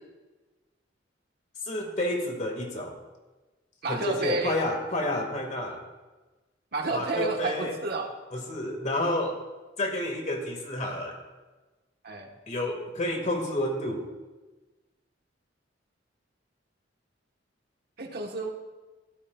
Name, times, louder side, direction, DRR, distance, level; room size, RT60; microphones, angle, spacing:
voice 1, 1.7-3.0 3.9-5.8 6.9-7.8 8.3-9.4 9.8-11.2 12.5-14.0, left 1 dB, 40° left, 2 dB, 2.0 m, -30 dB
voice 2, 3.8-4.6 6.7-8.1 12.0-12.3 18.0-18.5, right 2 dB, 55° right, 2 dB, 1.4 m, -30 dB
16.0 x 13.0 x 2.4 m, 1.2 s
head